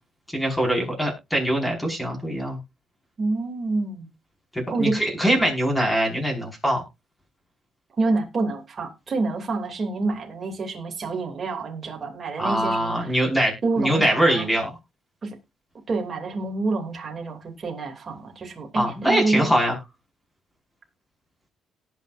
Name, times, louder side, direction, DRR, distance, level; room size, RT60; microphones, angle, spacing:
voice 1, 0.3-2.6 4.5-6.8 12.4-14.7 18.7-19.7, equal, 5° left, 0 dB, 5.3 m, -23 dB
voice 2, 3.2-4.1 4.7-5.0 8.0-13.2 13.6-14.5 15.2-15.4 15.9-19.5, right 3 dB, 35° right, 2 dB, 2.7 m, -27 dB
18.5 x 6.5 x 2.6 m, 0.24 s
cardioid pair, 120°, 0 cm